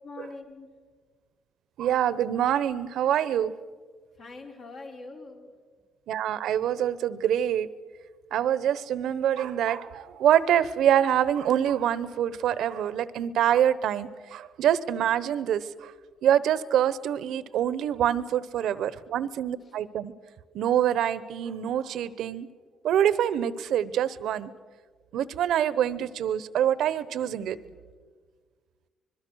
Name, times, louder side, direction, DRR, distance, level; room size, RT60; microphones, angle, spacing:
voice 1, 0.0-0.7 4.2-5.5, left 3 dB, 65° left, 1 dB, 4.5 m, -43 dB
voice 2, 1.8-3.5 6.1-7.7 8.3-15.9 16.2-20.1 20.5-22.5 22.8-24.5 25.1-27.6, right 10 dB, 80° right, 16 dB, 1.0 m, -25 dB
25.5 x 22.0 x 6.4 m, 1.5 s
cardioid pair, 90°, 0 cm